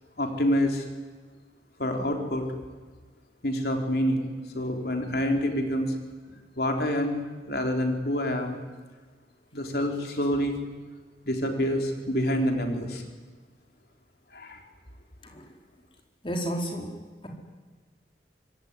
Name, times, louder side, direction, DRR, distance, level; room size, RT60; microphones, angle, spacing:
voice 1, 0.2-0.9 1.8-2.5 3.4-6.0 6.6-8.6 9.5-10.6 11.3-13.0 14.3-14.6, equal, 60° left, 3 dB, 3.8 m, -27 dB
voice 2, 16.2-16.9, right 1 dB, 30° left, 1 dB, 4.6 m, -31 dB
25.5 x 22.5 x 9.9 m, 1.4 s
head